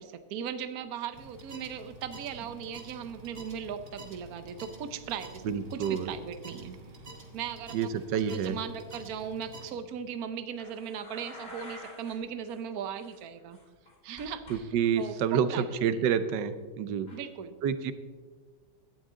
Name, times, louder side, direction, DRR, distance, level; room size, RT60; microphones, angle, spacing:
voice 1, 0.0-6.8 7.3-13.6 14.0-15.7 15.9-16.1 17.1-17.6, right 8 dB, 60° right, 10 dB, 1.2 m, -38 dB
sound 1, 1.1-9.7, right 2 dB, 35° right, 1.8 m, -48 dB
voice 2, 5.4-6.1 7.7-8.6 14.5-17.1 17.6-17.9, right 8 dB, 80° right, 12 dB, 1.5 m, -28 dB
sound 2, 10.6-12.2 12.4-12.6 13.0-14.6 14.8-15.2 17.1-17.2, left 1 dB, 35° left, 3.5 m, -49 dB
17.0 x 12.0 x 3.8 m, 1.5 s
omnidirectional pair, 1.9 m